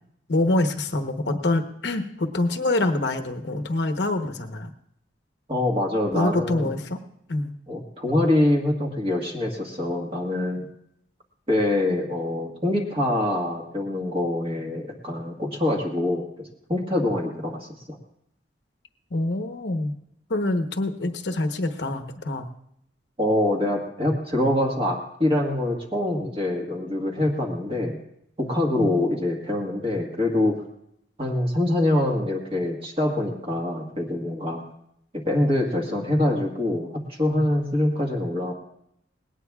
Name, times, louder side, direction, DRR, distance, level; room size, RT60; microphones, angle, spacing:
voice 1, 0.3-4.7 6.1-7.0 7.3-7.5 19.1-19.9 20.3-22.5 28.8-29.0, left 2 dB, 70° left, 6 dB, 1.0 m, -25 dB
voice 2, 5.5-6.8 7.7-10.7 11.5-18.0 23.2-28.0 28.4-30.6 31.2-34.6 35.1-38.5, left 1 dB, 30° right, 0 dB, 1.5 m, -25 dB
20.0 x 17.5 x 2.4 m, 0.76 s
head